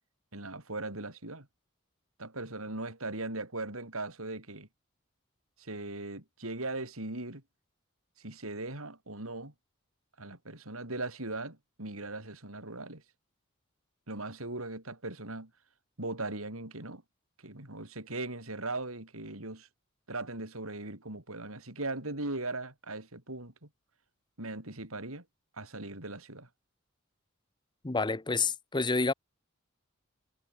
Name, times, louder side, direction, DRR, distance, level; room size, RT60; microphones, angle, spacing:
voice 1, 0.3-1.5 2.2-4.7 5.6-7.4 8.2-9.5 10.2-13.0 14.1-15.5 16.0-17.0 17.4-19.7 20.1-23.7 24.4-25.2 25.6-26.5, right 2 dB, 85° right, 5.7 m, -39 dB
voice 2, 27.8-29.1, left 3 dB, 20° left, 0.8 m, -29 dB
head